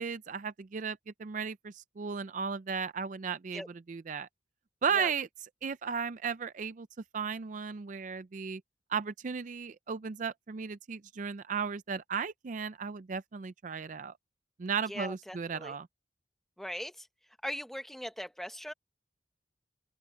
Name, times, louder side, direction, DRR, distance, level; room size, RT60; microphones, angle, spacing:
voice 1, 0.0-4.3 4.8-5.3 5.6-6.9 7.1-8.6 8.9-14.1 14.6-15.9, right 6 dB, 45° right, 0.4 m, -35 dB
voice 2, 14.9-15.7 16.6-17.1 17.4-18.7, equal, ahead, 1.0 m, -40 dB
open air
head